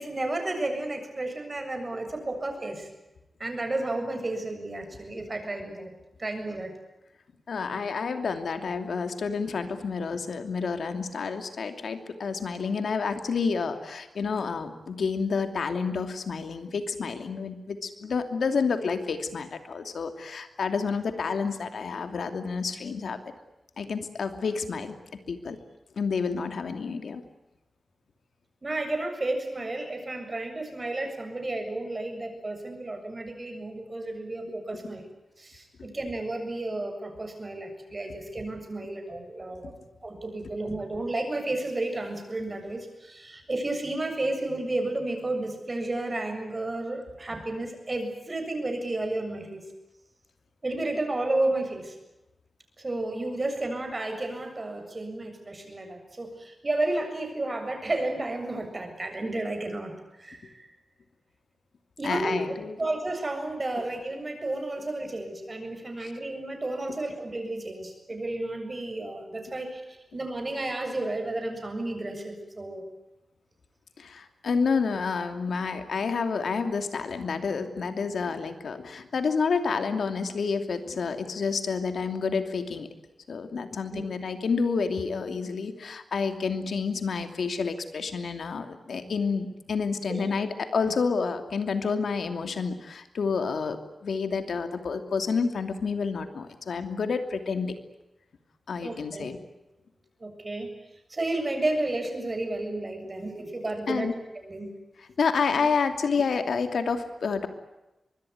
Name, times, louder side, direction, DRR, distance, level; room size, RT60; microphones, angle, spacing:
voice 1, 0.0-2.9 3.4-5.9 6.2-6.7 28.6-35.0 35.4-39.7 40.0-49.6 50.6-52.0 52.8-60.7 62.0-69.8 70.1-72.8 83.9-84.1 89.0-89.1 90.1-90.3 90.8-90.9 98.8-99.3 100.2-100.7 101.1-104.1 104.4-104.8, right 2 dB, 30° right, 5 dB, 7.3 m, -32 dB
voice 2, 7.5-23.2 23.8-25.0 25.3-25.6 26.0-27.2 38.8-38.9 62.0-62.8 66.0-66.1 74.0-82.9 83.3-97.8 98.7-99.4 103.9-104.1 105.2-107.5, left 5 dB, 85° left, 8 dB, 2.8 m, -29 dB
24.5 x 22.0 x 9.6 m, 0.97 s
wide cardioid pair, 120°, 0 cm